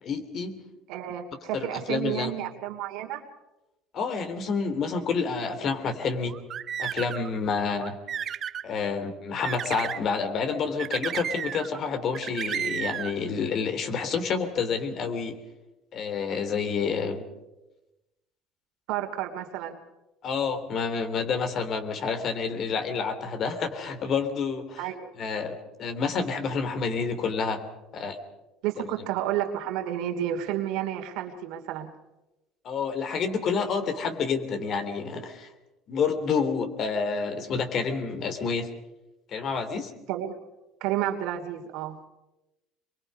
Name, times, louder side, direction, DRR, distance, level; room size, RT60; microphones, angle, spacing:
voice 1, 0.0-0.6 1.5-2.3 3.9-6.4 6.8-8.0 8.6-15.4 15.9-17.2 20.2-24.9 25.2-27.6 27.9-28.2 28.8-28.9 32.6-35.5 35.9-38.7 39.3-39.9, left 5 dB, 50° left, 8 dB, 3.1 m, -29 dB
voice 2, 0.9-3.2 18.9-19.8 24.8-25.1 28.6-31.9 40.1-40.4 40.8-42.0, right 11 dB, 75° right, 4 dB, 2.8 m, -31 dB
sound 1, 6.3-7.3 7.8-8.7 9.4-10.0 10.8-11.8 12.1-13.1, right 8 dB, 45° right, 1.0 m, -32 dB
25.5 x 22.5 x 5.5 m, 0.99 s
supercardioid pair, 90°, 0 cm